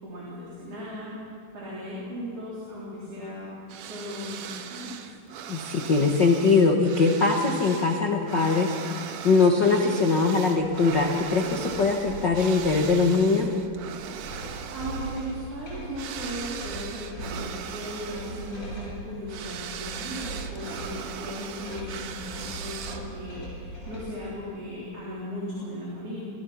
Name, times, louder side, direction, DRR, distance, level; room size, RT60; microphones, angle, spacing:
voice 1, 0.0-1.1 1.5-3.5 3.8-4.4 4.7-5.0 14.7-26.2, equal, 40° right, -6 dB, 4.6 m, -37 dB
sound 1, 3.7-23.3, right 8 dB, 70° right, 2.3 m, -39 dB
voice 2, 5.5-13.5, left 4 dB, 75° left, 2 dB, 1.0 m, -22 dB
sound 2, 11.3-24.2, right 1 dB, 20° left, 6.2 m, -40 dB
25.0 x 19.5 x 5.9 m, 2.2 s
omnidirectional pair, 4.3 m